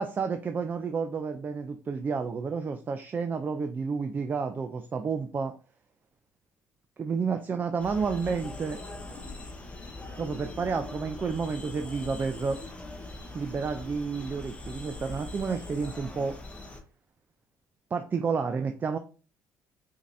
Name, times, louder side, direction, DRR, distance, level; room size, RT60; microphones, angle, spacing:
voice 1, 0.0-5.5 7.0-8.8 10.2-12.6 13.3-16.4 17.9-19.0, right 5 dB, 30° right, 7 dB, 0.3 m, -30 dB
sound 1, 7.8-16.8, left 2 dB, 20° left, 0.7 m, -41 dB
5.1 x 2.7 x 2.5 m, 0.36 s
cardioid pair, 105°, 6 cm